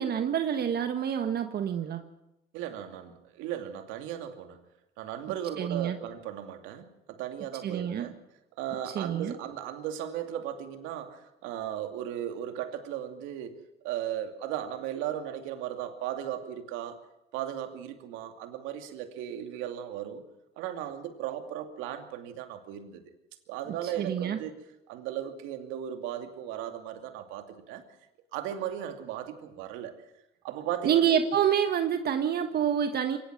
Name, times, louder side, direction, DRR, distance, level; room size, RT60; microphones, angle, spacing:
voice 1, 0.0-2.0 5.6-6.0 7.6-8.1 8.9-9.3 24.0-24.4 30.8-33.2, right 9 dB, 55° right, 7 dB, 1.5 m, -27 dB
voice 2, 2.5-4.6 5.0-8.2 8.6-17.0 17.3-20.3 20.6-23.0 23.5-24.6 24.9-27.9 28.3-30.0 30.4-31.1, right 10 dB, 85° right, 6 dB, 2.6 m, -36 dB
23.0 x 18.5 x 6.1 m, 0.89 s
supercardioid pair, 85°, 20 cm